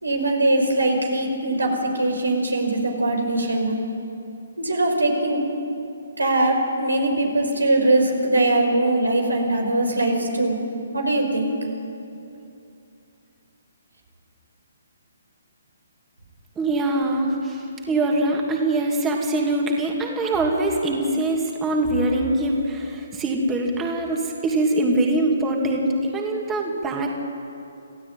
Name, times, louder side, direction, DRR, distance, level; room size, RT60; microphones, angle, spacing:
voice 1, 0.0-3.8 4.6-5.5 6.2-10.6 10.9-11.5, right 2 dB, 90° right, 2 dB, 5.5 m, -21 dB
voice 2, 16.6-27.1, right 2 dB, 15° right, 0 dB, 2.7 m, -23 dB
27.5 x 15.5 x 9.0 m, 2.7 s
figure-of-eight pair, 140°, 0 cm